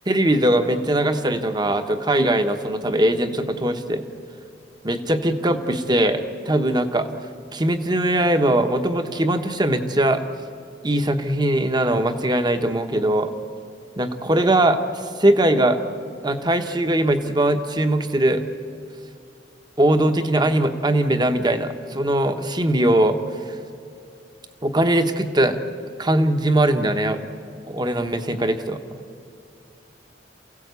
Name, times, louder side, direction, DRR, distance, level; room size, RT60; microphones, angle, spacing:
voice 1, 0.1-4.1 4.8-7.1 7.5-10.2 10.8-13.3 14.0-15.8 16.2-18.4 19.8-23.2 23.5-23.6 24.6-25.6 26.0-27.2 27.7-28.8, right 1 dB, 25° right, 8 dB, 1.1 m, -20 dB
28.0 x 16.0 x 8.2 m, 2.5 s
head